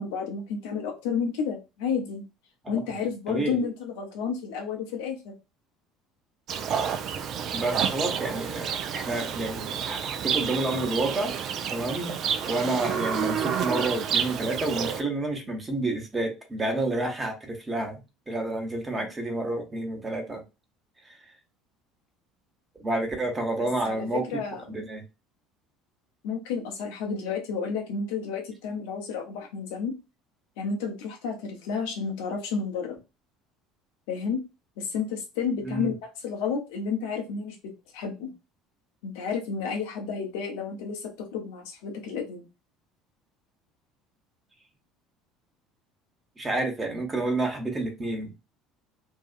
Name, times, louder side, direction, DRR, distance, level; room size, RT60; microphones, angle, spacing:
voice 1, 0.0-2.2 2.7-5.3 18.9-19.0 23.8-24.8 26.2-29.9 30.6-33.0 34.1-34.4 34.8-36.0 36.2-37.6 37.9-38.3 39.0-42.5, left 5 dB, 65° left, 0.7 m, -31 dB
voice 2, 3.3-3.6 7.5-11.3 11.7-12.2 12.4-20.4 21.0-21.2 22.8-24.3 24.7-25.0 35.6-35.9 46.4-48.3, right 2 dB, 25° right, 1.0 m, -29 dB
Livestock farm animals working animals, 6.5-15.0, right 7 dB, 50° right, 0.3 m, -29 dB
2.7 x 2.3 x 2.5 m
figure-of-eight pair, 65°, 0 cm